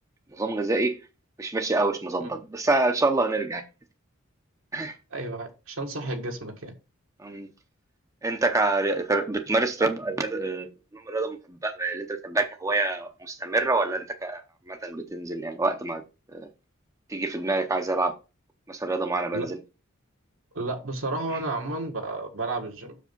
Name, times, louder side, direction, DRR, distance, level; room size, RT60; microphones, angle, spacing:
voice 1, 0.3-1.0 1.4-3.6 4.7-5.0 7.2-7.5 8.2-16.0 16.3-16.5 17.1-18.1 18.7-19.6, right 2 dB, 15° right, 0.7 m, -27 dB
voice 2, 5.1-6.7 19.3-19.5 20.5-23.0, right 2 dB, 75° right, 1.7 m, -32 dB
6.6 x 5.0 x 5.3 m
head